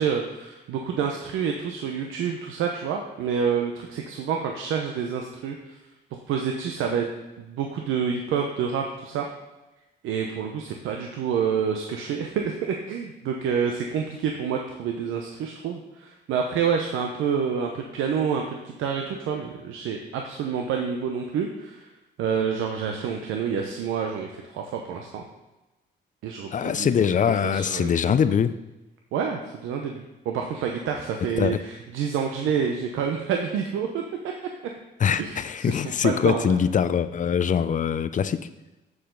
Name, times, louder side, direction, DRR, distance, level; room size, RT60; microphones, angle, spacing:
voice 1, 0.0-5.8 6.1-7.1 7.4-9.3 10.0-21.9 22.2-25.2 26.2-26.9 27.3-28.0 29.1-34.0 35.2-36.6, right 7 dB, 90° right, 2 dB, 0.8 m, -28 dB
voice 2, 26.5-28.6 31.4-31.6 35.0-38.5, left 7 dB, 40° left, 13 dB, 0.5 m, -23 dB
14.0 x 4.9 x 3.9 m, 1.1 s
cardioid pair, 90°, 20 cm